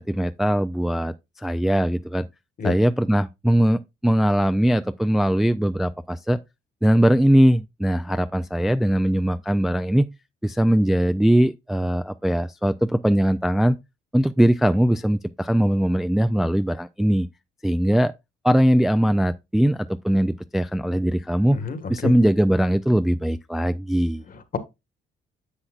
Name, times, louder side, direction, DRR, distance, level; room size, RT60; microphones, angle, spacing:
voice 1, 0.0-2.2 2.6-6.4 6.8-10.1 10.4-13.8 14.1-17.3 17.6-18.1 18.4-21.6 21.9-24.2, equal, ahead, 0.3 m, -20 dB
voice 2, 21.5-22.2 24.3-24.6, left 5 dB, 45° left, 1.4 m, -29 dB
9.9 x 6.7 x 2.4 m
cardioid pair, 90°, 20 cm